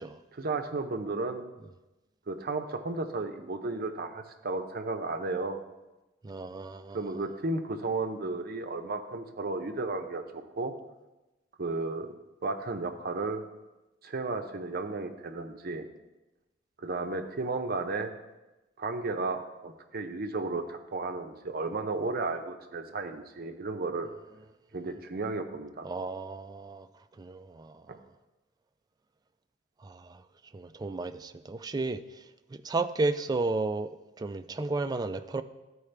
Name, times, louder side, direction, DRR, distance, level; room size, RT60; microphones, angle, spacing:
voice 1, 0.3-1.4 2.3-5.6 6.9-10.7 11.6-12.1 12.4-13.4 14.0-15.9 16.8-18.1 18.8-24.1 24.7-25.9 27.9-28.0, right 3 dB, 50° right, 0.7 m, -33 dB
voice 2, 6.2-7.1 25.8-26.9 27.1-28.0 29.8-30.2 30.5-33.9 34.2-35.4, right 3 dB, 20° right, 0.3 m, -33 dB
13.0 x 4.7 x 3.3 m
head